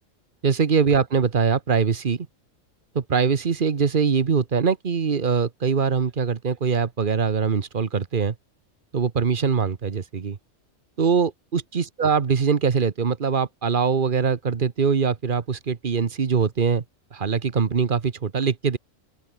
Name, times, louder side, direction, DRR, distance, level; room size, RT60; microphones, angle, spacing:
voice 1, 0.4-2.3 2.9-8.3 8.9-10.4 11.0-16.8 17.1-18.8, right 6 dB, 40° right, 1.2 m, -22 dB
open air
omnidirectional pair, 1.3 m